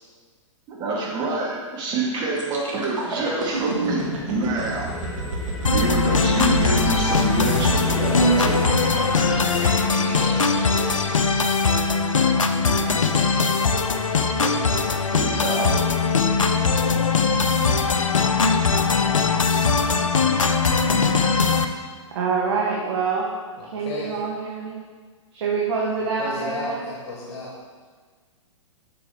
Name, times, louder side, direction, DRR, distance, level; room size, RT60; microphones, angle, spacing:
voice 1, 0.7-4.9 5.7-8.7 12.6-13.0 14.2-15.7, right 3 dB, 25° right, -3 dB, 1.8 m, -27 dB
sound 1, 2.4-12.2 12.7-12.9, right 3 dB, 75° right, 1.9 m, -30 dB
sound 2, 4.6-9.6, left 1 dB, 5° right, 1.4 m, -36 dB
sound 3, 5.6-21.6, left 4 dB, 80° left, 0.6 m, -20 dB
voice 2, 9.5-11.0 23.6-24.1 26.0-27.5, left 3 dB, 55° left, -4 dB, 1.7 m, -34 dB
voice 3, 22.1-23.3 23.7-24.7 25.3-26.8, right 5 dB, 55° right, -3 dB, 1.3 m, -25 dB
8.0 x 6.0 x 3.5 m, 1.5 s
figure-of-eight pair, 110°, 17 cm